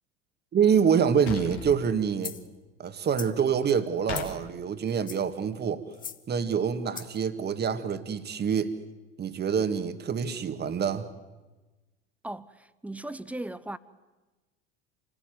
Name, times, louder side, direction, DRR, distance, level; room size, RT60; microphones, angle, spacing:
voice 1, 0.5-2.4 2.8-5.8 6.3-8.8 9.2-11.1, right 7 dB, 30° right, 1.9 m, -26 dB
sound 1, 1.3-1.8 4.1-4.3, left 7 dB, 75° left, 3.0 m, -35 dB
sound 2, 2.2-2.5 3.0-3.4 4.1-4.4 4.9-5.3 5.9-6.2 6.9-7.2, left 7 dB, 25° left, 1.5 m, -40 dB
voice 2, 12.2-13.8, right 1 dB, 5° right, 1.0 m, -37 dB
27.5 x 19.0 x 9.3 m
hypercardioid pair, 75°, 32 cm